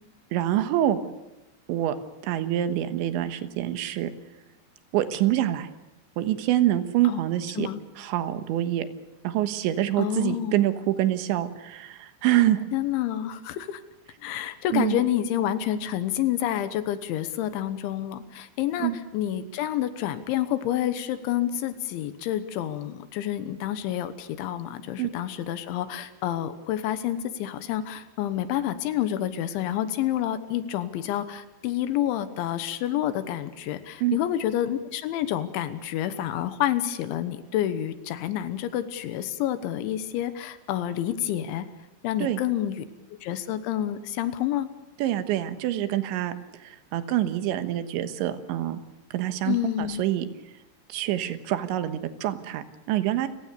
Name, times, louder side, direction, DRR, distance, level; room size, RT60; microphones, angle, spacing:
voice 1, 0.3-1.0 1.7-2.0 2.2-4.1 4.9-5.7 6.2-7.7 8.0-8.9 9.2-12.6 14.7-15.0 18.8-19.0 25.0-25.1 34.0-34.2 42.2-42.4 45.0-46.3 46.6-48.8 49.1-50.3 50.9-53.3, right 13 dB, 80° right, 10 dB, 3.5 m, -26 dB
voice 2, 10.0-10.6 12.7-13.8 14.2-41.7 42.0-42.9 43.2-44.7 49.5-50.0, left 11 dB, 85° left, 12 dB, 3.5 m, -28 dB
29.5 x 17.5 x 6.8 m, 0.95 s
omnidirectional pair, 5.3 m